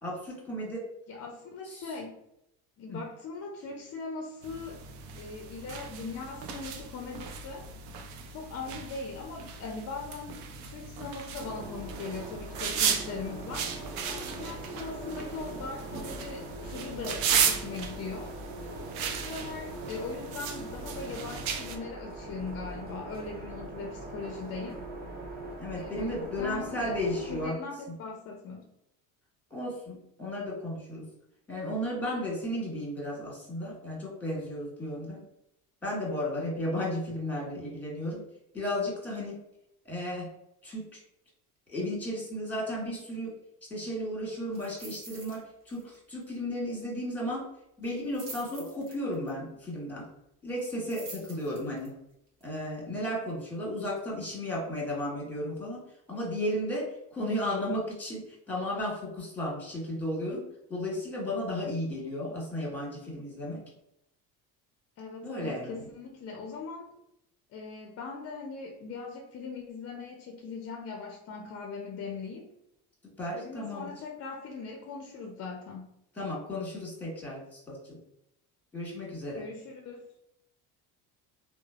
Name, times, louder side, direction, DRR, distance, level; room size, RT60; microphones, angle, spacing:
voice 1, 0.0-0.8 1.8-1.9 2.9-3.0 25.6-27.6 27.9-28.0 29.5-31.1 31.5-35.2 35.8-38.2 38.5-39.4 39.8-40.3 40.6-41.0 41.7-43.3 43.7-47.4 47.8-50.0 50.4-51.9 52.4-55.8 56.1-63.6 65.2-65.9 73.2-73.9 76.2-78.0 78.7-79.4, left 1 dB, 5° left, -4 dB, 1.4 m, -34 dB
voice 2, 1.1-2.2 2.8-4.9 5.2-7.7 8.3-13.7 14.1-18.4 19.0-24.8 25.8-28.7 65.0-66.9 67.5-72.5 73.3-75.9 79.3-80.1, left 4 dB, 35° left, 2 dB, 0.4 m, -40 dB
sound 1, 4.4-21.8, right 7 dB, 75° right, 0.6 m, -35 dB
sound 2, 11.4-27.5, right 2 dB, 20° right, 0.5 m, -42 dB
sound 3, 44.5-45.4 45.7-45.9 46.2-46.3 47.8-49.3 50.6-51.9 52.4-52.5, right 3 dB, 45° right, 1.0 m, -46 dB
3.1 x 2.0 x 2.3 m, 0.82 s
supercardioid pair, 85°, 43 cm